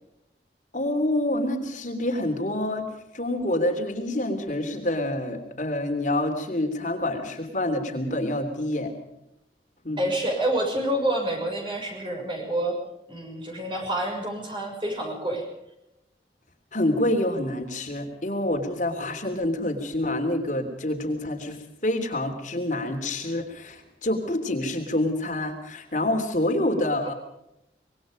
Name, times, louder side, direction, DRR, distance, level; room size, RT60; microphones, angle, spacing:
voice 1, 0.7-2.9 3.1-8.9 9.8-10.0 16.7-27.1, left 1 dB, 45° left, 4 dB, 3.3 m, -27 dB
voice 2, 10.0-12.8 13.1-15.5, right 1 dB, 30° right, 1 dB, 6.6 m, -28 dB
25.5 x 21.5 x 5.2 m, 0.84 s
head